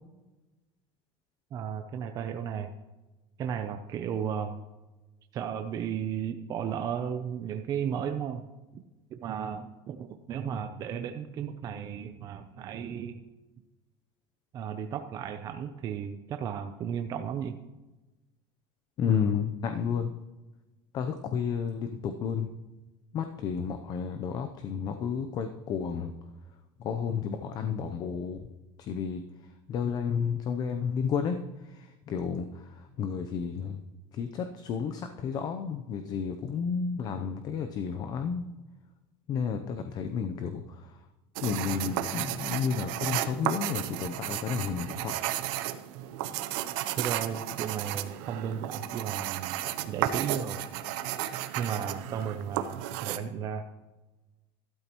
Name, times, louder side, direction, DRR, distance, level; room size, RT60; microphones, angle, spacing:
voice 1, 1.5-2.7 3.4-4.6 5.3-8.4 9.1-13.2 14.5-17.6 47.0-49.6 49.9-50.6 51.6-53.6, right 8 dB, 30° right, 6 dB, 0.6 m, -34 dB
voice 2, 19.0-20.1 20.9-22.5 23.1-26.1 26.8-28.5 28.8-29.2 29.7-33.8 34.1-38.5 39.3-41.0 41.4-45.2, left 6 dB, 35° left, 7 dB, 0.6 m, -31 dB
sound 1, 41.4-53.2, right 13 dB, 75° right, 0.7 m, -33 dB
12.5 x 12.5 x 3.0 m, 1.1 s
cardioid pair, 165°, 12 cm